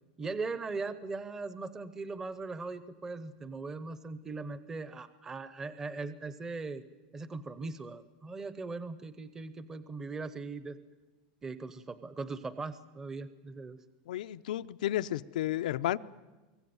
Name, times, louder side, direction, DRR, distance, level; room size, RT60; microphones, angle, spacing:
voice 1, 0.2-6.8 7.1-10.8 11.4-13.8, right 3 dB, 10° right, 13 dB, 0.7 m, -39 dB
voice 2, 14.1-16.0, left 13 dB, 90° left, 12 dB, 0.6 m, -32 dB
24.0 x 16.0 x 9.5 m, 1.2 s
supercardioid pair, 165°, 4 cm